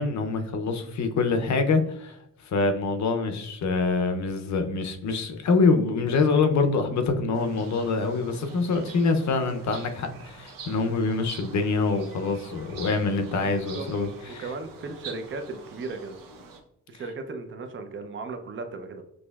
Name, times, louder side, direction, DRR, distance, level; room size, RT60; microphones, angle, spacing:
voice 1, 0.0-2.2 2.4-14.5, left 4 dB, 60° left, 6 dB, 0.6 m, -25 dB
sound 1, 7.3-16.6, right 5 dB, 85° right, 0.8 m, -45 dB
voice 2, 13.4-13.9 14.4-16.2 16.9-19.0, right 3 dB, 35° right, 6 dB, 0.5 m, -36 dB
6.2 x 3.0 x 2.3 m, 0.78 s
wide cardioid pair, 145°, 32 cm